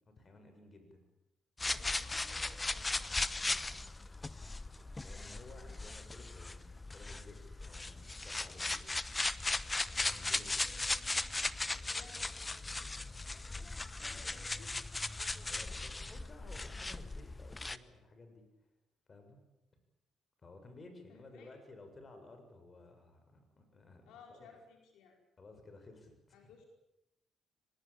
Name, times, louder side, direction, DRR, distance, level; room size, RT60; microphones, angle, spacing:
voice 1, 0.2-1.1 5.0-7.4 7.6-9.0 10.0-10.6 14.2-14.3 15.3-18.7 19.1-19.4 20.4-24.5 25.4-26.4, left 2 dB, 35° left, 6 dB, 7.2 m, -55 dB
sound 1, 1.6-17.8, left 2 dB, 20° left, 1.0 m, -38 dB
voice 2, 1.7-3.9 10.6-10.8 11.9-12.9 14.0-14.7 21.1-21.5 24.0-25.2 26.3-26.7, left 5 dB, 90° left, 2 dB, 5.0 m, -59 dB
24.0 x 20.0 x 8.8 m, 0.90 s
cardioid pair, 90°, 0 cm